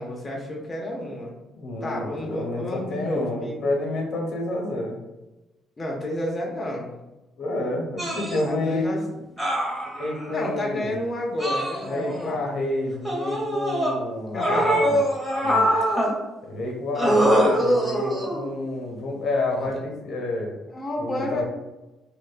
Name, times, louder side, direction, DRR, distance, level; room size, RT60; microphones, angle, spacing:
voice 1, 0.0-1.4 1.8-3.6 5.8-6.9 8.4-9.0 10.3-12.5 14.3-14.8 20.7-21.4, left 1 dB, 25° left, -2 dB, 0.5 m, -30 dB
voice 2, 1.5-5.0 7.4-8.9 9.9-11.0 11.8-15.1 15.4-15.7 16.4-20.6 21.0-21.4, left 2 dB, 65° left, 0 dB, 0.7 m, -29 dB
sound 1, 8.0-8.4 9.4-10.3 11.4-12.3 13.0-13.9 14.4-16.1 16.9-18.5 19.6-19.8, equal, 10° right, 0.8 m, -23 dB
2.6 x 2.1 x 2.4 m, 1.0 s
cardioid pair, 95°, 0 cm